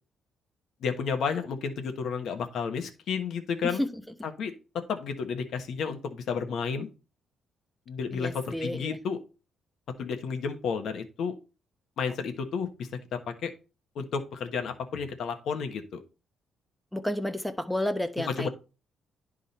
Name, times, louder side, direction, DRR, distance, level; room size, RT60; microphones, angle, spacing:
voice 1, 0.8-3.8 4.2-6.9 7.9-9.2 10.0-11.3 12.0-12.7 13.4-13.5 13.9-16.0 18.3-18.5, left 6 dB, 70° left, 6 dB, 1.3 m, -31 dB
voice 2, 8.1-9.0 16.9-18.5, left 1 dB, 5° left, 9 dB, 0.9 m, -31 dB
10.5 x 3.7 x 4.2 m, 0.32 s
cardioid pair, 90°, 0 cm